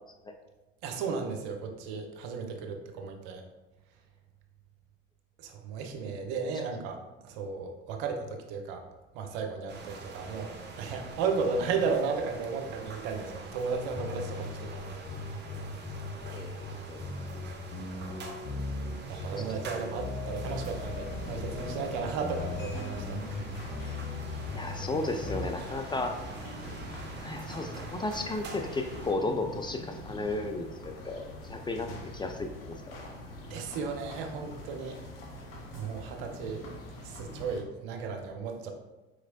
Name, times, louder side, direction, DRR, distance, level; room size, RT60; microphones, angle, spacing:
voice 1, 0.8-3.4 5.4-8.9 9.1-10.5 10.8-14.9 17.9-18.2 19.1-23.5 26.9-27.0 33.5-35.0 35.7-36.6 37.0-38.7, right 5 dB, 65° right, 4 dB, 0.7 m, -34 dB
sound 1, 9.7-29.1, right 3 dB, 35° right, 0.8 m, -45 dB
sound 2, 13.9-25.5, left 3 dB, 40° left, 0.9 m, -39 dB
voice 2, 16.3-17.0 19.4-19.5 24.6-26.1 27.2-32.8, left 2 dB, 15° left, 4 dB, 0.3 m, -34 dB
sound 3, 20.4-37.6, left 1 dB, 70° left, 0.8 m, -44 dB
4.9 x 3.0 x 2.6 m, 1.1 s
hypercardioid pair, 60°, 30 cm